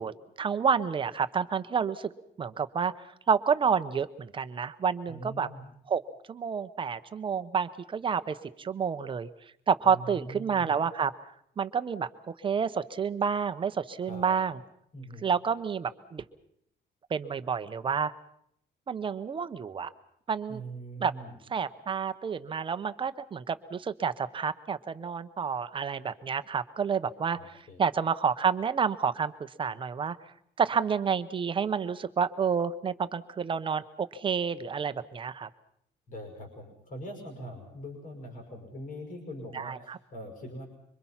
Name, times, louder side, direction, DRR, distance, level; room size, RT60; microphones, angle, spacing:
voice 1, 0.0-2.1 2.4-2.9 3.3-5.5 5.9-6.0 6.3-9.3 9.7-11.1 11.6-14.6 15.2-16.2 17.1-18.1 18.9-19.9 20.3-20.6 21.0-21.1 21.5-30.2 30.6-35.5 39.5-40.0, right 6 dB, 30° right, 12 dB, 0.8 m, -29 dB
voice 2, 5.1-5.6 9.8-10.7 14.0-14.4 14.9-15.3 20.5-21.3 27.4-27.8 36.1-40.6, right 1 dB, 45° left, 3 dB, 5.5 m, -42 dB
26.0 x 24.5 x 5.8 m, 0.70 s
cardioid pair, 175°, 18 cm